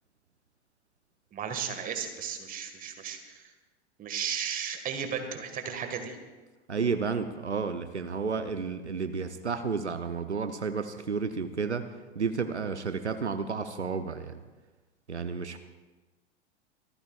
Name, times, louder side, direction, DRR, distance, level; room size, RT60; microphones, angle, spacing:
voice 1, 1.3-3.5 4.0-6.2, right 7 dB, 25° right, 6 dB, 1.7 m, -35 dB
voice 2, 6.7-11.9 12.1-14.4 15.1-15.6, right 5 dB, 85° right, 9 dB, 0.8 m, -31 dB
25.5 x 14.0 x 2.4 m, 1.2 s
figure-of-eight pair, 90°, 33 cm